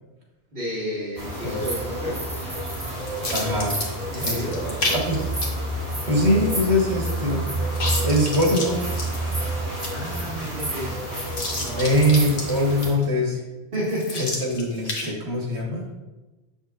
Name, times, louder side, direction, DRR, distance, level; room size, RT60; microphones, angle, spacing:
voice 1, 0.5-2.3 4.1-5.0 9.9-11.0 11.6-11.9 13.7-14.4 15.0-15.2, equal, 55° right, -9 dB, 1.9 m, -32 dB
sound 1, 1.2-12.9, right 1 dB, 35° right, 1.8 m, -29 dB
sound 2, 1.4-2.0 2.8-5.5 5.8-5.9 6.3-6.7 7.6-9.5 9.8-9.9 10.1-10.2 11.3-13.0 13.7-15.1, left 2 dB, 55° left, 1.2 m, -31 dB
voice 2, 3.3-3.8 4.2-4.4 4.9-5.2 6.1-7.6 8.0-9.1 11.8-13.4 14.2-15.9, left 1 dB, 75° right, -1 dB, 1.7 m, -22 dB
7.2 x 6.3 x 2.5 m, 1.1 s
omnidirectional pair, 1.1 m